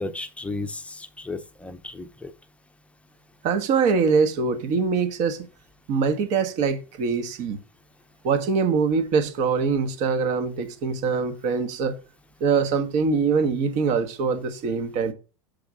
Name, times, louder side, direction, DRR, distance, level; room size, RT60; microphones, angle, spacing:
voice 1, 0.0-2.3, left 2 dB, 5° left, 0.7 m, -34 dB
voice 2, 3.4-5.5 5.9-7.6 8.2-12.0 12.4-15.1, right 5 dB, 40° right, 1.0 m, -23 dB
7.0 x 5.0 x 3.7 m
figure-of-eight pair, 85°, 19 cm